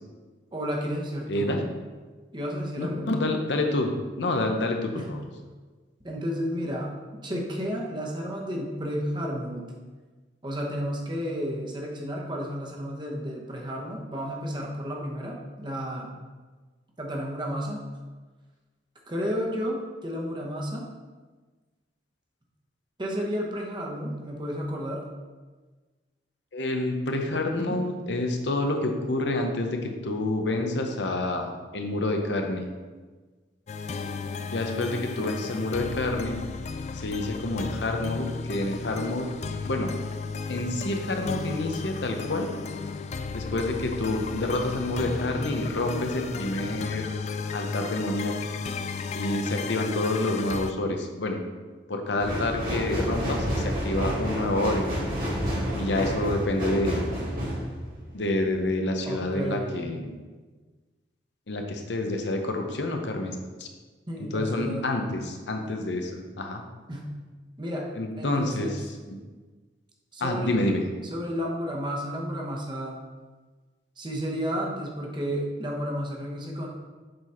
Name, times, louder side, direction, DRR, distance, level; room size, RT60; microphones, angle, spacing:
voice 1, 0.5-1.5 2.3-3.1 4.9-5.1 6.0-6.9 7.2-9.6 10.4-16.1 17.0-17.8 19.1-20.9 23.0-25.0 27.7-27.8 59.1-59.8 64.1-64.8 66.9-67.1 67.6-67.9 68.2-68.8 70.1-70.7 71.1-73.0 74.0-76.7, equal, 25° right, -1 dB, 1.0 m, -32 dB
voice 2, 1.3-1.6 2.8-5.2 26.5-32.7 34.4-36.4 36.9-39.3 39.6-39.9 40.5-42.5 43.3-47.1 47.5-48.5 49.1-51.4 51.9-54.8 55.8-57.1 58.1-60.2 61.5-63.7 64.2-66.6 68.0-69.2 70.2-70.8, left 2 dB, 75° left, 4 dB, 0.8 m, -28 dB
sound 1, 33.7-50.7, left 4 dB, 40° left, 0.3 m, -34 dB
sound 2, 52.2-58.7 59.2-59.3, equal, 50° right, 2.0 m, -30 dB
7.7 x 4.1 x 4.3 m, 1.3 s
head